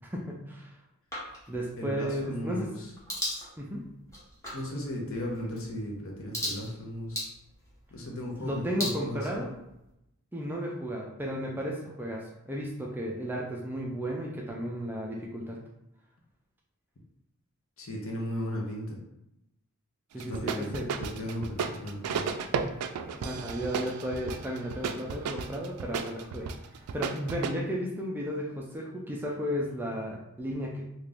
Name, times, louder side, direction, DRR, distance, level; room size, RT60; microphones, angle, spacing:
voice 1, 0.0-0.7 1.5-2.7 3.6-3.8 8.4-9.5 10.3-15.6 20.1-20.9 23.2-26.5 26.9-30.8, equal, 10° right, -2 dB, 0.4 m, -34 dB
sound 1, 1.1-9.9, equal, 15° left, 0.8 m, -40 dB
voice 2, 1.8-2.9 4.5-7.2 7.9-9.5 17.8-19.0 20.1-22.3, equal, 65° left, -1 dB, 0.8 m, -36 dB
sound 2, 20.2-27.5, right 6 dB, 85° right, 0.3 m, -34 dB
2.8 x 2.5 x 3.4 m, 0.86 s
head